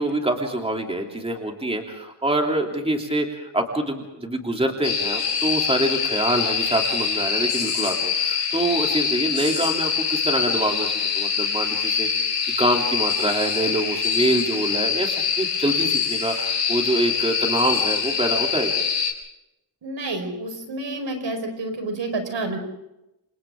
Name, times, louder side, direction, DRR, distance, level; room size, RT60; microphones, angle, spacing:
voice 1, 0.0-18.8, right 1 dB, 15° right, 2 dB, 3.2 m, -25 dB
sound 1, 4.8-19.1, left 6 dB, 65° left, 4.3 m, -24 dB
voice 2, 19.8-22.6, right 2 dB, 70° right, 5 dB, 5.0 m, -29 dB
28.5 x 28.0 x 3.8 m, 0.90 s
wide cardioid pair, 115°, 45 cm